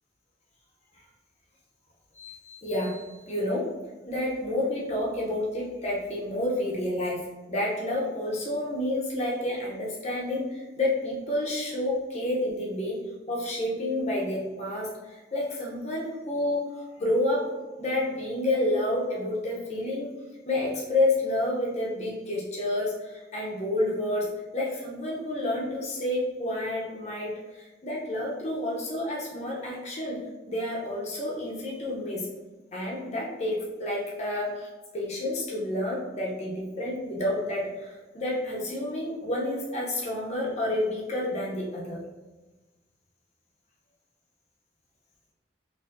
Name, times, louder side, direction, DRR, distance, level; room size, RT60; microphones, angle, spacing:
voice 1, 2.1-3.7 4.1-7.2 7.5-13.0 13.3-16.7 17.0-17.5 17.8-20.1 20.5-24.3 24.5-30.2 30.5-32.3 32.7-34.7 34.9-42.0, left 1 dB, 40° left, -4 dB, 0.7 m, -29 dB
4.3 x 3.0 x 2.5 m, 1.2 s
head